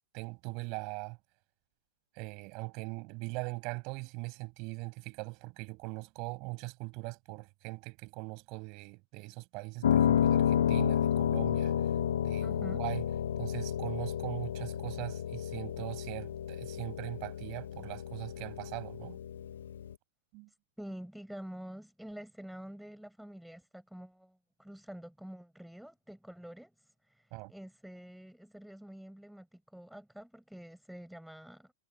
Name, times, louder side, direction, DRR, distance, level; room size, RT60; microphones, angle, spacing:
voice 1, 0.1-1.2 2.2-11.7 12.2-13.0 13.4-19.2 20.3-20.5 27.3-27.5, right 29 dB, 45° right, 5.6 m, -41 dB
Piano, 9.8-19.9, left 9 dB, 70° left, 0.8 m, -31 dB
voice 2, 12.4-12.8 20.8-26.7 27.5-31.7, equal, ahead, 6.0 m, -47 dB
hypercardioid pair, 110°, 0 cm